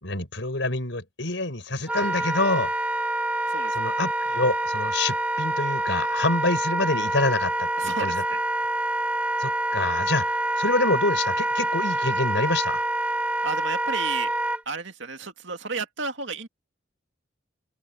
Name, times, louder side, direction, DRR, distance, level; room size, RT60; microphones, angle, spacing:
voice 1, 0.0-2.7 3.7-8.2 9.4-12.8, left 2 dB, 75° left, 5.8 m, -27 dB
Wind instrument woodwind instrument, 1.8-14.6, right 1 dB, 10° right, 1.9 m, -26 dB
voice 2, 7.8-8.4 13.4-14.3 14.7-16.5, right 4 dB, 75° right, 2.2 m, -32 dB
open air
head